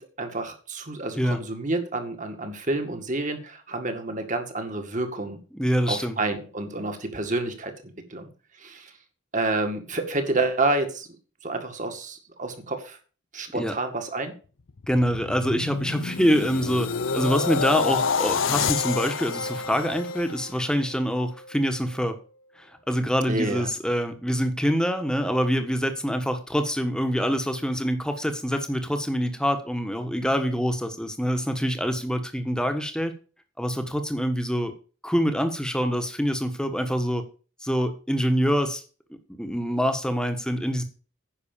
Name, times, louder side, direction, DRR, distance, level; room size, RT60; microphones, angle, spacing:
voice 1, 0.0-5.4 5.9-8.3 8.6-8.9 9.3-11.1 11.4-13.0 13.3-14.3 23.3-23.7, right 2 dB, 40° right, 6 dB, 2.0 m, -29 dB
voice 2, 5.5-6.2 13.5-13.8 14.9-16.9 17.1-22.2 22.6-33.1 33.6-34.7 35.0-37.2 37.6-38.8 39.4-40.8, equal, 5° left, 7 dB, 1.3 m, -25 dB
sound 1, 14.7-20.9 21.4-21.7, left 5 dB, 75° left, 0.7 m, -28 dB
10.0 x 6.2 x 7.3 m, 0.37 s
head